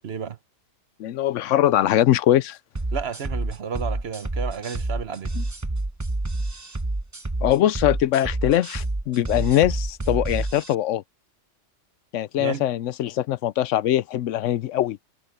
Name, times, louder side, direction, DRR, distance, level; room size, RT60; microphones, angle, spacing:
voice 1, 0.0-0.4 2.9-5.3 12.4-12.7, right 7 dB, 60° right, 1.1 m, -32 dB
voice 2, 1.0-2.6 5.4-5.5 7.4-11.0 12.1-15.0, left 12 dB, 80° left, 0.9 m, -22 dB
sound 1, 2.8-10.7, right 2 dB, 15° right, 0.9 m, -28 dB
omnidirectional pair, 1.3 m